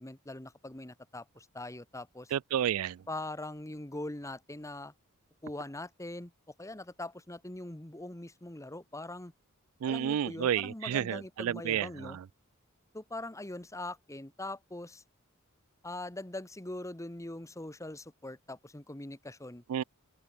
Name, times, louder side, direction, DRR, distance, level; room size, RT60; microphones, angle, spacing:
voice 1, 0.0-2.3 3.1-4.9 5.4-6.3 6.6-9.3 9.9-12.2 12.9-15.0 15.8-19.6, left 2 dB, 15° left, 1.5 m, -42 dB
voice 2, 2.3-3.0 9.8-12.2 19.7-19.8, right 9 dB, 70° right, 0.3 m, -31 dB
open air
head